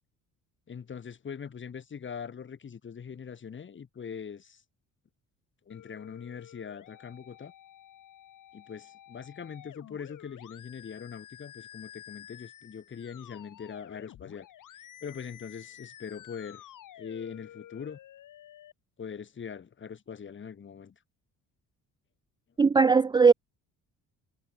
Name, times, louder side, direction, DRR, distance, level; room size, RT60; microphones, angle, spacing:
voice 1, 0.7-4.6 5.7-7.5 8.5-14.5 15.0-16.6 17.0-18.0 19.0-20.9, left 7 dB, 35° left, 2.2 m, -42 dB
sound 1, 5.7-18.7, left 12 dB, 65° left, 4.0 m, -51 dB
voice 2, 22.6-23.3, right 5 dB, 15° right, 0.3 m, -19 dB
cardioid pair, 125°, 34 cm